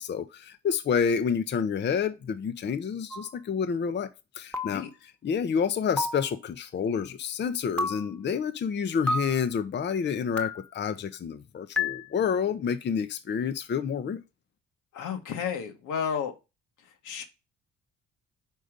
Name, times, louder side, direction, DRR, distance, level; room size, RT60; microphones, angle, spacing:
voice 1, 0.0-4.1 4.3-4.8 5.2-14.2, left 7 dB, 35° left, 0.6 m, -29 dB
sound 1, 3.1-3.3 4.5-4.9 6.0-6.3 7.8-8.1 9.1-9.4 10.4-10.7 11.8-12.1, left 3 dB, 5° left, 1.1 m, -30 dB
voice 2, 14.9-16.3 16.8-17.2, left 7 dB, 85° left, 1.5 m, -32 dB
5.4 x 3.8 x 5.0 m
cardioid pair, 90°, 30 cm